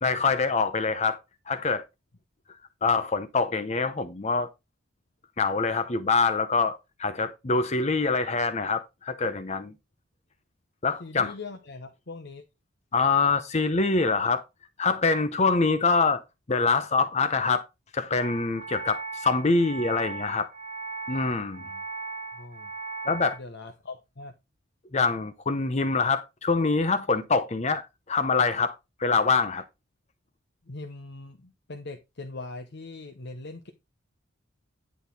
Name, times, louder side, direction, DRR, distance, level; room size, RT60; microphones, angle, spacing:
voice 1, 0.0-1.2 1.5-1.8 2.8-4.5 5.4-9.7 10.8-11.3 12.9-14.4 14.8-16.2 16.5-17.7 17.9-20.5 21.1-21.6 23.1-23.4 24.9-29.6, left 4 dB, 30° left, 0.7 m, -25 dB
voice 2, 11.0-12.4 21.6-21.8 22.3-22.7 23.4-24.3 30.6-33.7, left 3 dB, 55° left, 1.0 m, -41 dB
sound 1, 18.2-23.4, right 4 dB, 35° right, 4.1 m, -37 dB
10.5 x 4.0 x 5.3 m
head